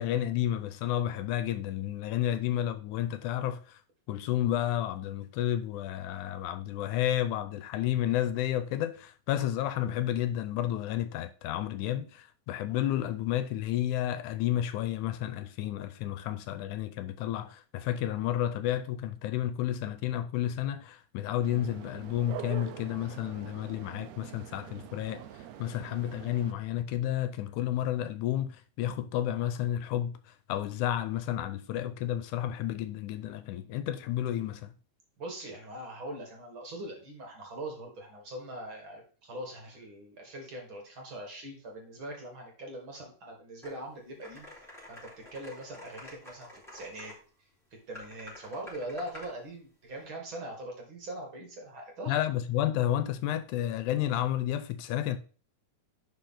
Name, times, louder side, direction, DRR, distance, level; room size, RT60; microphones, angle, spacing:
voice 1, 0.0-3.8 4.1-25.2 25.6-30.1 30.5-34.7 52.1-55.2, left 12 dB, 85° left, 2.2 m, -31 dB
sound 1, 21.4-26.5, right 11 dB, 75° right, 1.8 m, -44 dB
voice 2, 35.2-44.5 44.9-47.1 47.9-52.2, right 1 dB, 45° right, 2.4 m, -42 dB
sound 2, 43.6-43.7 44.2-47.2 47.9-49.3, left 1 dB, ahead, 3.6 m, -48 dB
10.5 x 5.1 x 3.8 m
omnidirectional pair, 3.5 m